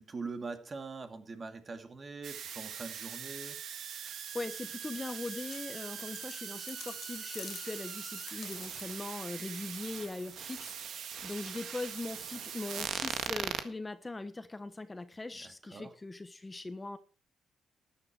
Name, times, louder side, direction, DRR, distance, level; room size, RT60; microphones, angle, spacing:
voice 1, 0.0-3.6 15.3-15.9, right 4 dB, 35° right, 2.4 m, -43 dB
sound 1, 2.2-13.6, right 8 dB, 70° right, 1.6 m, -41 dB
voice 2, 4.3-17.0, left 2 dB, 20° left, 1.1 m, -41 dB
sound 2, 5.0-9.2, left 7 dB, 55° left, 1.1 m, -50 dB
13.0 x 10.5 x 4.9 m
cardioid pair, 90°, 0 cm